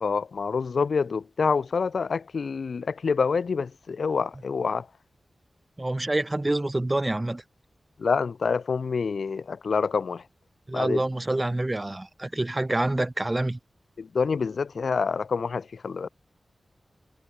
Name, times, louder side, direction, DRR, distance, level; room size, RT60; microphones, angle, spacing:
voice 1, 0.0-4.8 8.0-10.2 10.7-11.0 14.1-16.1, left 5 dB, 80° left, 0.3 m, -27 dB
voice 2, 5.8-7.4 10.7-13.6, right 1 dB, 20° right, 3.1 m, -27 dB
wide cardioid pair, 115°, 0 cm